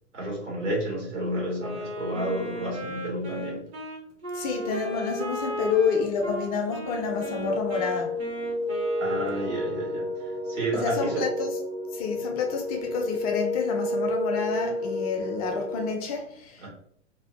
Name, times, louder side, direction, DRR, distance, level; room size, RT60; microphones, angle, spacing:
voice 1, 0.1-3.6 9.0-11.3 16.6-16.7, right 1 dB, 80° right, 1.5 m, -31 dB
Wind instrument woodwind instrument, 1.6-10.0, equal, 65° right, 0.9 m, -36 dB
voice 2, 4.3-8.2 10.7-11.5 11.9-16.7, left 5 dB, 35° left, 0.4 m, -29 dB
sound 1, 6.8-15.9, left 2 dB, 25° right, 0.5 m, -31 dB
2.6 x 2.1 x 2.4 m
figure-of-eight pair, 95°, 36 cm